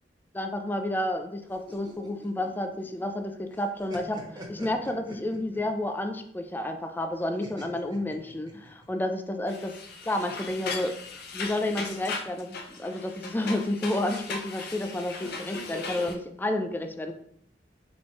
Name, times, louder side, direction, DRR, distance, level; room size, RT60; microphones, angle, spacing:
voice 1, 0.3-9.7 10.0-10.9 11.3-17.1, left 1 dB, 10° left, 5 dB, 0.3 m, -30 dB
sound 1, 1.5-3.2 3.5-5.8 7.4-8.9, equal, 25° right, 0.9 m, -44 dB
sound 2, 9.5-16.2, left 3 dB, 60° left, 0.5 m, -38 dB
4.2 x 2.3 x 4.5 m, 0.69 s
head